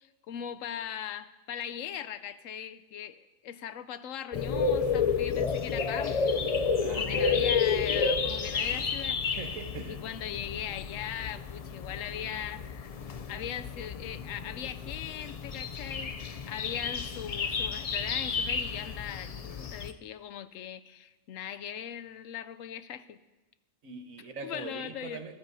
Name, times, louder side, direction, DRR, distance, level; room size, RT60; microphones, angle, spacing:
voice 1, 0.0-9.4 9.9-13.0 13.3-23.2 24.2-25.2, left 9 dB, 80° left, 13 dB, 1.0 m, -40 dB
sound 1, 4.3-19.9, left 5 dB, 55° left, 0.4 m, -31 dB
voice 2, 6.8-7.7 9.3-10.0 23.8-25.3, right 5 dB, 90° right, 6 dB, 1.6 m, -41 dB
21.0 x 14.5 x 2.7 m, 1.1 s
omnidirectional pair, 1.4 m